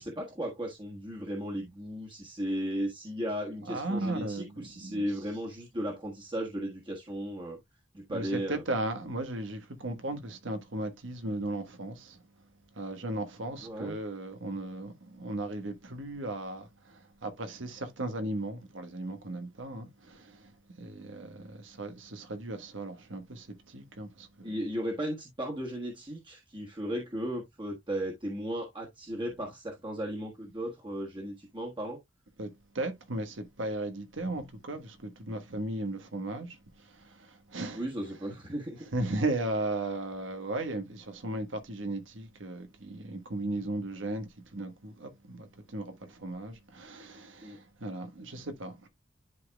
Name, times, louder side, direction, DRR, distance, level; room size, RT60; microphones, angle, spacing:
voice 1, 0.0-7.6 7.9-8.6 13.6-14.0 24.4-32.0 37.7-38.8 47.4-47.6, equal, 25° right, 1.4 m, -35 dB
voice 2, 3.6-5.0 8.1-12.2 12.8-20.5 20.8-24.5 32.4-32.5 32.7-37.8 38.9-48.9, right 2 dB, 90° right, 1.3 m, -36 dB
11.0 x 4.1 x 2.2 m
head